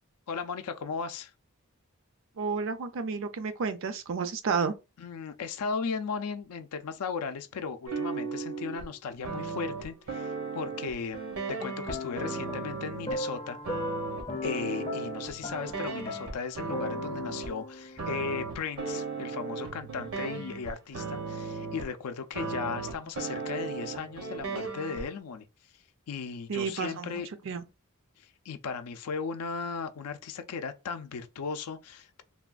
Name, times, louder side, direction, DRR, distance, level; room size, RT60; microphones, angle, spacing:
voice 1, 0.3-1.3 5.0-13.6 14.3-25.5 26.1-27.3 28.2-32.2, left 5 dB, 85° left, 0.4 m, -36 dB
voice 2, 2.4-4.7 26.5-27.6, right 5 dB, 60° right, 0.4 m, -31 dB
sound 1, 7.9-8.9 9.2-13.1 13.6-17.5 18.0-22.0 22.3-25.1, right 4 dB, 75° right, 0.8 m, -36 dB
sound 2, 11.9-18.2, left 2 dB, 25° left, 0.4 m, -38 dB
3.3 x 2.2 x 2.4 m
head